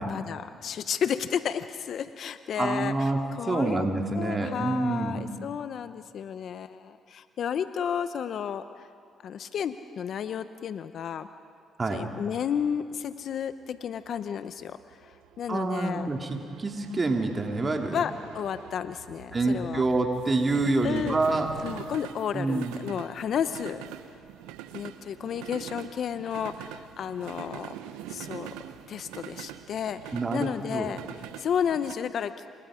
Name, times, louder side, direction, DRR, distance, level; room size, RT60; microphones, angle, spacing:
voice 1, 0.1-3.9 4.1-8.9 9.2-11.3 11.9-16.1 17.9-19.8 20.8-21.2 21.6-23.8 24.7-27.7 28.1-28.5 28.9-32.3, left 8 dB, 65° left, 11 dB, 0.7 m, -32 dB
voice 2, 2.6-5.2 11.8-12.0 15.5-18.0 19.3-21.5 22.3-22.8 30.1-30.9, right 2 dB, 35° right, 2 dB, 2.6 m, -27 dB
sound 1, 12.6-31.9, right 12 dB, 90° right, 0.8 m, -44 dB
29.5 x 26.0 x 5.0 m, 2.3 s
supercardioid pair, 55°, 0 cm